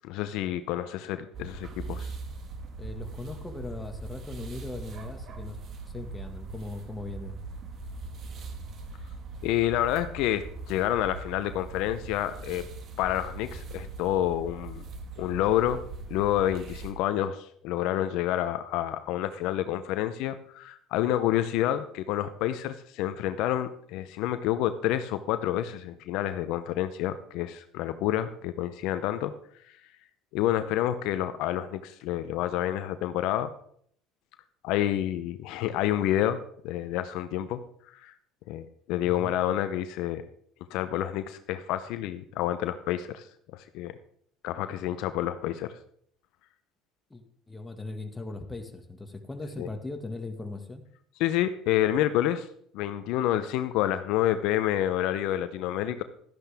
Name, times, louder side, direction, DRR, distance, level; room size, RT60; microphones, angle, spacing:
voice 1, 0.0-2.1 9.4-12.6 13.0-14.8 15.2-15.8 16.1-29.3 30.3-33.5 34.6-36.4 36.6-37.6 37.9-38.1 38.5-40.2 40.7-43.3 43.5-43.9 44.4-45.8 49.6-49.7 51.2-52.5 52.7-56.0, left 12 dB, 70° left, 11 dB, 0.6 m, -28 dB
sound 1, 1.3-16.9, right 3 dB, 50° right, 1.6 m, -40 dB
voice 2, 2.8-5.6 5.9-7.3 39.0-39.3 47.1-50.8, left 2 dB, 15° left, 5 dB, 1.8 m, -39 dB
12.0 x 11.0 x 3.5 m, 0.64 s
supercardioid pair, 85°, 0 cm